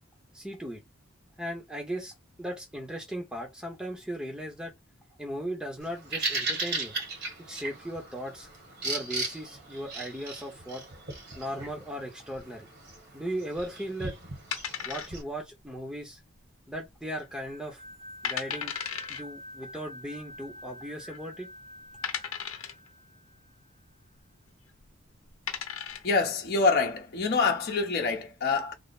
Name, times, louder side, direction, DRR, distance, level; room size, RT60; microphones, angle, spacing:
voice 1, 0.3-0.8 1.4-4.7 5.2-6.9 7.5-8.5 8.8-10.8 11.4-12.7 13.1-14.1 14.8-16.2 16.7-17.8 18.2-18.7 19.1-21.5, equal, 5° right, 0.8 m, -37 dB
Bird vocalization bird call bird song, 5.8-15.2, right 3 dB, 50° right, 1.4 m, -37 dB
sound 1, 14.5-15.5 15.7-15.8 16.4-16.9 17.2-17.3 17.9-18.0 18.2-19.2 20.3-20.4 21.1-21.2 22.0-22.9 24.7-24.9 25.3-26.1, left 8 dB, 80° left, 0.8 m, -35 dB
sound 2, 17.3-23.7, left 1 dB, 35° right, 0.5 m, -47 dB
voice 2, 26.0-28.7, left 4 dB, 50° left, 0.8 m, -26 dB
3.3 x 2.1 x 4.1 m
head